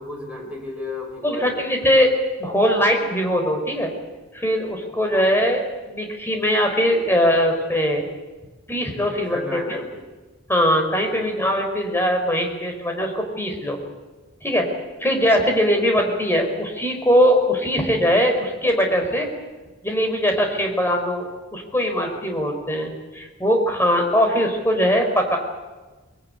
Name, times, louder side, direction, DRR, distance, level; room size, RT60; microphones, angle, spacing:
voice 1, 0.0-1.9 5.1-5.3 9.1-10.1 11.1-11.4, left 1 dB, 5° right, 0 dB, 4.7 m, -34 dB
voice 2, 1.2-2.1 2.4-3.9 4.3-8.0 8.7-9.8 10.5-13.8 14.4-14.6 15.0-19.3 19.8-25.4, equal, 10° left, 3 dB, 4.3 m, -21 dB
23.5 x 21.0 x 9.7 m, 1.2 s
head